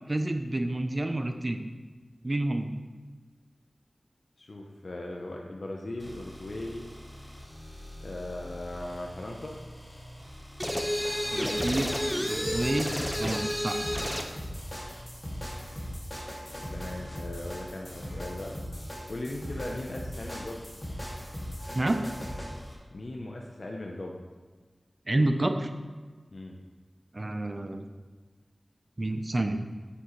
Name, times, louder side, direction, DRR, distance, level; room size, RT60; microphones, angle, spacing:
voice 1, 0.1-1.6 2.2-2.7 11.3-11.9 12.3-12.9 13.2-13.8 21.7-22.0 25.1-25.7 27.1-27.9 29.0-29.6, right 1 dB, 40° right, 7 dB, 0.5 m, -29 dB
voice 2, 4.4-6.9 8.0-9.5 16.7-18.5 19.1-20.6 22.9-24.1 26.3-26.6, left 1 dB, 65° left, 0 dB, 0.6 m, -38 dB
sound 1, 6.0-22.8, equal, 25° left, 2.1 m, -40 dB
sound 2, 10.6-14.3, equal, 5° left, 0.7 m, -30 dB
7.2 x 6.7 x 3.1 m, 1.4 s
wide cardioid pair, 60°, 0 cm